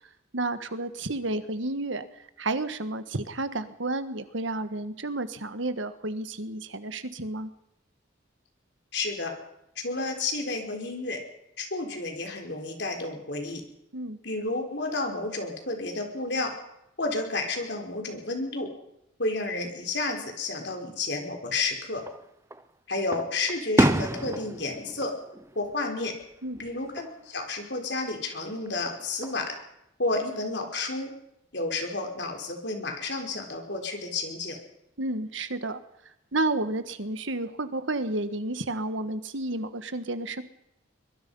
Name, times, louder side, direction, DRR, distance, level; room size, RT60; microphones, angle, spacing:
voice 1, 0.3-7.5 13.9-14.2 26.4-26.6 35.0-35.8 36.3-40.4, right 2 dB, 70° right, 11 dB, 1.5 m, -31 dB
voice 2, 8.9-9.3 9.8-11.2 11.6-13.6 14.2-16.5 17.0-18.7 19.2-22.0 22.9-25.1 25.6-26.1 26.6-29.5 30.0-31.1 31.5-34.6, left 3 dB, 55° left, 4 dB, 4.3 m, -31 dB
Fireworks, 21.9-22.6 23.1-26.2 26.6-27.1 28.7-29.5, right 1 dB, 15° right, 0.7 m, -29 dB
23.5 x 22.0 x 5.5 m, 0.82 s
head